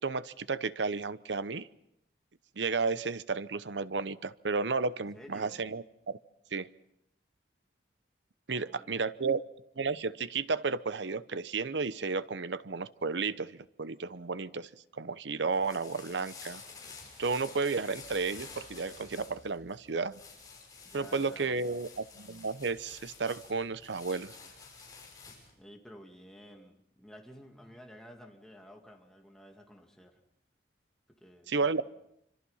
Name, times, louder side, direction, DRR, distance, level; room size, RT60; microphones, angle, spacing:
voice 1, 0.0-1.7 2.6-6.2 6.5-6.7 8.5-9.4 9.8-16.6 17.2-20.2 20.9-24.4 31.5-31.8, right 4 dB, 90° right, 15 dB, 0.8 m, -33 dB
voice 2, 5.1-5.7 8.5-9.3 20.8-21.8 25.6-30.2 31.1-31.8, equal, 5° left, 1 dB, 2.4 m, -53 dB
sound 1, 15.3-25.5, left 4 dB, 20° left, 6.1 m, -50 dB
26.5 x 25.5 x 5.7 m, 0.78 s
head